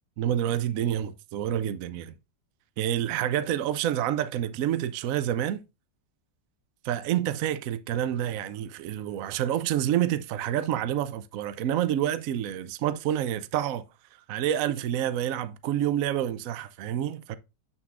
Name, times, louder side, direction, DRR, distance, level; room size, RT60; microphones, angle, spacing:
voice 1, 0.2-2.1 2.8-5.6 6.8-13.8 14.3-17.4, right 11 dB, 70° right, 0.8 m, -28 dB
7.6 x 6.8 x 2.4 m
omnidirectional pair, 1.9 m